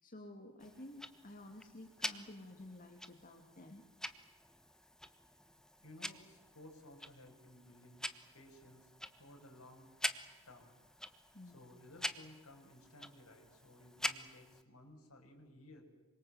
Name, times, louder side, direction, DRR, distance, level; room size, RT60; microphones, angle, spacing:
voice 1, 0.0-3.8 11.3-11.7, left 1 dB, 40° left, 4 dB, 2.6 m, -52 dB
Tick-tock, 0.6-14.6, left 1 dB, 5° left, 1.3 m, -46 dB
voice 2, 5.8-8.1 8.3-9.9 10.5-10.8 11.5-15.8, left 1 dB, 70° left, 3 dB, 6.4 m, -57 dB
27.0 x 25.0 x 8.1 m, 1.2 s
head